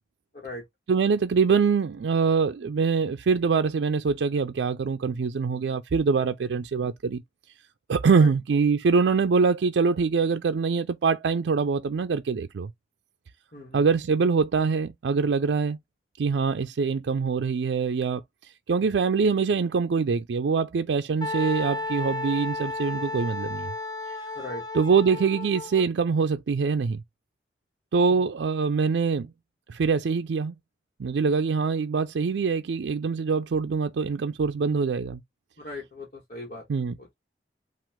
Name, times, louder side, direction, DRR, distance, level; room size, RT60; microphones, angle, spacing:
voice 1, 0.9-7.2 7.9-12.7 13.7-15.8 16.2-23.7 24.7-27.0 27.9-29.3 29.7-30.5 31.0-35.2 36.7-36.9, right 5 dB, 85° right, 0.4 m, -24 dB
voice 2, 13.5-13.8 24.3-24.6 28.1-28.2 35.6-36.6 37.0-37.1, left 2 dB, 50° left, 1.4 m, -39 dB
Wind instrument woodwind instrument, 21.2-25.8, left 2 dB, 25° left, 0.9 m, -33 dB
5.9 x 2.5 x 3.5 m
head